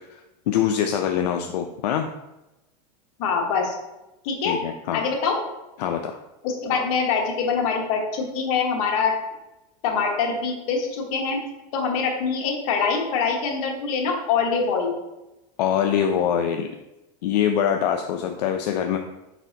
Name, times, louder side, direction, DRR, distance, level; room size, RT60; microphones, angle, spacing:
voice 1, 0.5-2.1 4.4-5.0 5.8-6.2 15.6-16.7 17.2-19.0, left 9 dB, 85° left, 4 dB, 0.4 m, -23 dB
voice 2, 3.2-3.7 4.2-4.5 4.9-5.4 6.4-9.1 9.8-11.4 11.7-15.0, left 5 dB, 60° left, 1 dB, 1.1 m, -24 dB
4.5 x 4.0 x 2.7 m, 0.97 s
supercardioid pair, 130°, 21 cm